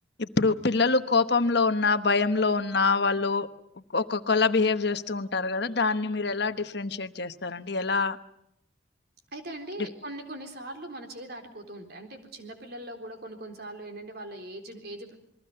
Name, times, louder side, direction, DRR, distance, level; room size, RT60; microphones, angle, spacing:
voice 1, 0.2-3.5 3.9-8.2, left 4 dB, 55° left, 10 dB, 1.1 m, -25 dB
voice 2, 9.3-15.2, right 1 dB, 55° right, 5 dB, 3.8 m, -40 dB
28.0 x 21.5 x 6.8 m, 0.76 s
head